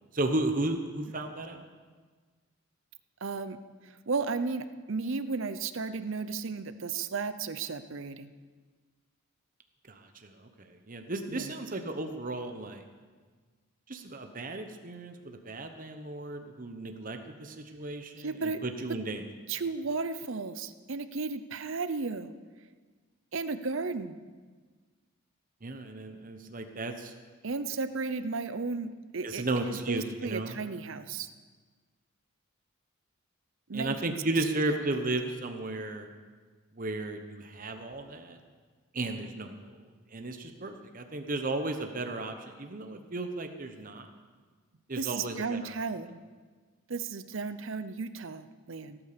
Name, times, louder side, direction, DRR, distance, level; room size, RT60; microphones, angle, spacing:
voice 1, 0.1-1.7 9.9-12.8 13.9-19.2 25.6-27.1 29.2-30.6 33.7-36.1 36.7-38.4 38.9-39.8 40.1-44.1 44.9-45.6, right 2 dB, 40° right, 6 dB, 1.0 m, -34 dB
voice 2, 3.2-3.6 3.8-8.3 11.3-11.5 18.2-18.6 19.5-22.3 23.3-24.2 27.4-31.3 33.7-34.2 45.0-46.2 46.9-49.0, right 4 dB, 60° right, 12 dB, 0.7 m, -34 dB
17.0 x 8.9 x 6.8 m, 1.5 s
head